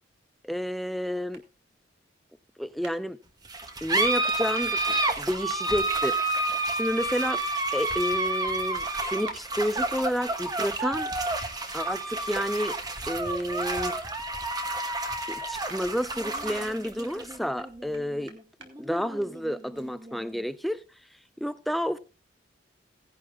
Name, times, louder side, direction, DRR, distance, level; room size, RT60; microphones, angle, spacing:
voice 1, 0.4-1.4 2.6-3.2 3.8-7.4 7.7-11.1 11.7-12.8 13.1-14.0 15.3-18.3 18.8-20.8 21.4-22.0, equal, ahead, 0.4 m, -30 dB
sound 1, 1.3-1.5 2.8-3.0 4.1-4.3 5.5-5.6 7.9-8.0 9.3-9.4 10.6-10.7 13.0-13.1 13.4-14.2 15.3-16.5 17.6-18.7, right 4 dB, 65° right, 2.0 m, -47 dB
sound 2, 3.4-20.4, right 2 dB, 20° right, 1.1 m, -30 dB
17.5 x 10.5 x 2.3 m
head